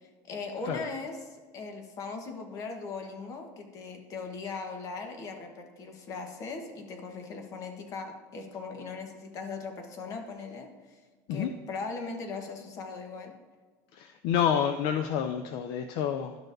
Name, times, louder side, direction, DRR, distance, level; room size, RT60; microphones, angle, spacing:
voice 1, 0.0-11.0 11.3-13.3, left 4 dB, 40° left, 4 dB, 1.1 m, -39 dB
voice 2, 13.9-16.4, left 8 dB, 60° left, 8 dB, 0.4 m, -29 dB
11.5 x 6.5 x 2.6 m, 1.4 s
cardioid pair, 150°, 9 cm